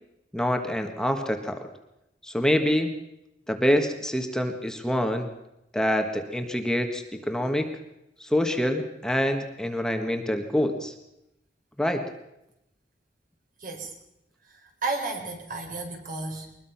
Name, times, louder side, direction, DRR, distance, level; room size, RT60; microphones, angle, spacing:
voice 1, 0.3-1.6 2.2-2.9 3.5-5.3 5.7-7.7 8.2-10.9 11.8-12.0, equal, 5° left, 5 dB, 1.6 m, -26 dB
voice 2, 13.6-13.9 14.6-16.5, right 3 dB, 50° right, 3 dB, 4.3 m, -33 dB
22.5 x 21.0 x 5.9 m, 0.86 s
head